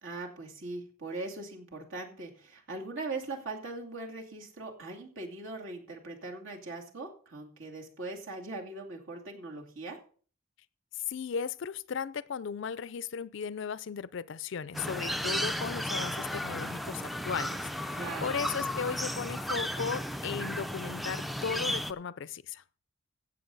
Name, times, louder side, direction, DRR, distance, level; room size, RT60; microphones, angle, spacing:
voice 1, 0.0-10.0 17.9-18.3, right 2 dB, 70° right, 2.6 m, -40 dB
voice 2, 11.1-22.6, left 6 dB, 60° left, 0.4 m, -36 dB
sound 1, 14.7-21.9, equal, ahead, 0.4 m, -34 dB
16.0 x 7.1 x 4.0 m
head